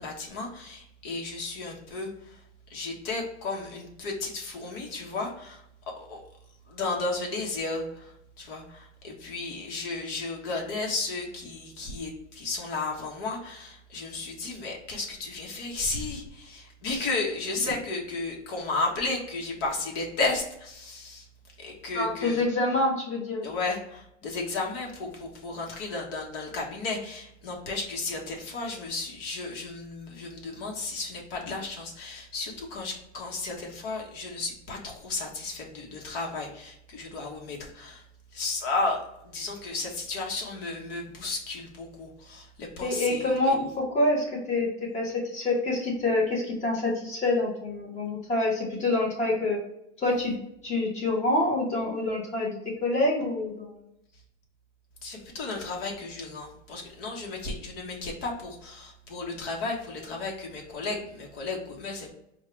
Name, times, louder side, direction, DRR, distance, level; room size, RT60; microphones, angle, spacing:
voice 1, 0.0-5.6 6.0-6.2 6.7-21.3 21.6-22.4 23.4-38.0 38.3-43.6 54.1-54.2 55.0-62.1, left 3 dB, 55° left, 0 dB, 1.3 m, -34 dB
voice 2, 21.9-23.4 42.8-49.6 50.0-50.4 50.6-53.8, left 2 dB, 20° left, -3 dB, 1.2 m, -26 dB
4.6 x 2.4 x 3.3 m, 0.78 s
supercardioid pair, 160°, 35 cm